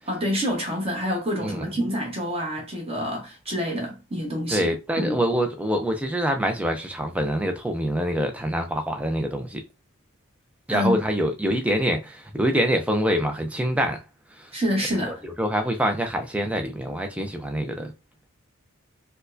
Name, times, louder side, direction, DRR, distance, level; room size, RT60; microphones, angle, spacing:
voice 1, 0.1-4.7 5.0-5.2 10.7-11.0 14.5-15.2, equal, 25° right, 1.0 m, -27 dB
voice 2, 4.5-9.6 10.7-14.0 14.3-14.5 15.0-17.9, equal, 5° right, 0.4 m, -25 dB
4.4 x 2.1 x 2.6 m
head